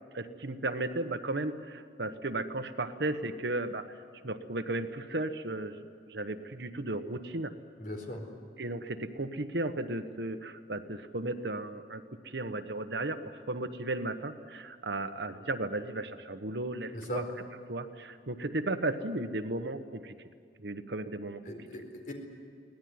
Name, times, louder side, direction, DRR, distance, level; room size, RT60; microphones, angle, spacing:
voice 1, 0.1-4.0 4.2-7.5 8.6-17.2 17.7-20.1 20.6-21.4, right 2 dB, 65° right, 8 dB, 1.3 m, -35 dB
voice 2, 7.8-8.3 16.9-17.2 21.5-22.1, equal, 50° left, 2 dB, 4.4 m, -39 dB
24.0 x 18.0 x 9.6 m, 2.4 s
head